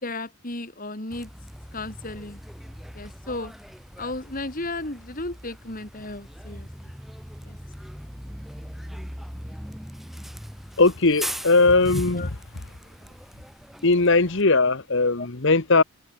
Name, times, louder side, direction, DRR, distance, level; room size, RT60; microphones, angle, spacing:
voice 1, 0.0-1.3 1.7-2.4 2.9-3.5 4.0-6.7 7.4-7.6 12.1-12.3 15.2-15.3, left 2 dB, 40° left, 3.0 m, -34 dB
Bus, 1.1-14.4, equal, ahead, 5.2 m, -40 dB
voice 2, 10.8-12.4 13.8-15.8, left 3 dB, 60° left, 1.3 m, -19 dB
head